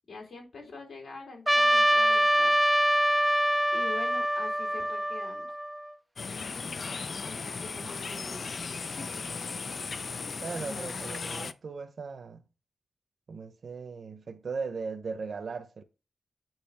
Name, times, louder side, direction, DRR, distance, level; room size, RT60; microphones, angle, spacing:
voice 1, 0.1-2.5 3.7-5.5 7.2-8.5 9.0-9.1 10.2-10.6, left 3 dB, 75° left, 3.6 m, -45 dB
Trumpet, 1.5-5.9, equal, 5° right, 0.4 m, -25 dB
sound 1, 6.2-11.5, left 4 dB, 60° left, 0.5 m, -36 dB
voice 2, 10.4-12.4 13.3-15.8, right 5 dB, 70° right, 0.9 m, -38 dB
9.0 x 3.0 x 5.8 m
wide cardioid pair, 90°, 0 cm